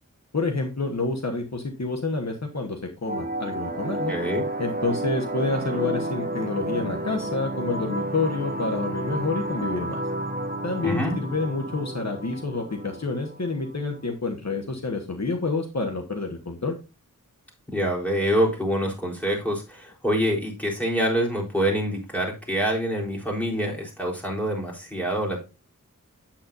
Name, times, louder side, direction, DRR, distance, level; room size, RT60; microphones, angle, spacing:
voice 1, 0.3-4.1 4.6-10.0 10.6-16.8, left 3 dB, 55° left, 3 dB, 1.3 m, -28 dB
sound 1, 3.1-14.1, right 1 dB, 30° right, 1.1 m, -31 dB
voice 2, 4.1-4.4 10.8-11.1 17.7-25.4, equal, 5° left, -2 dB, 3.9 m, -26 dB
8.8 x 8.2 x 2.6 m, 0.28 s
wide cardioid pair, 55°, 32 cm